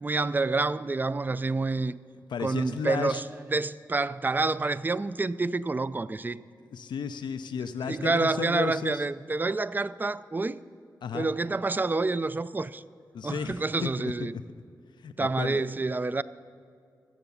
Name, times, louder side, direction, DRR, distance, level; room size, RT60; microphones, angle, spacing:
voice 1, 0.0-1.9 2.4-3.2 3.5-6.4 7.9-10.6 11.1-12.8 13.2-14.3 15.2-16.2, right 3 dB, 25° right, 0.4 m, -28 dB
voice 2, 2.3-3.2 6.7-9.0 11.0-11.3 13.1-14.3 15.0-15.6, left 6 dB, 80° left, 0.5 m, -34 dB
16.0 x 7.0 x 7.0 m
cardioid pair, 60°, 8 cm